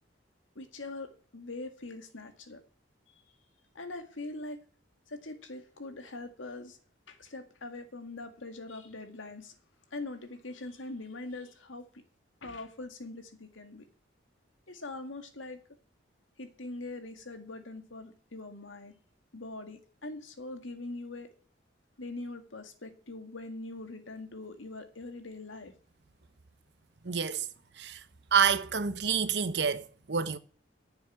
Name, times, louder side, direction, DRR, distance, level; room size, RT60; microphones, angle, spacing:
voice 1, 0.6-2.6 3.1-3.2 3.7-4.6 5.1-6.8 7.1-9.5 9.9-12.0 12.4-13.9 14.7-15.6 16.4-18.9 19.3-21.3 22.0-25.7, left 2 dB, 85° left, 2.0 m, -42 dB
voice 2, 27.0-27.5 27.8-28.0 28.3-30.4, right 6 dB, 60° right, 0.9 m, -28 dB
10.5 x 7.1 x 9.2 m
head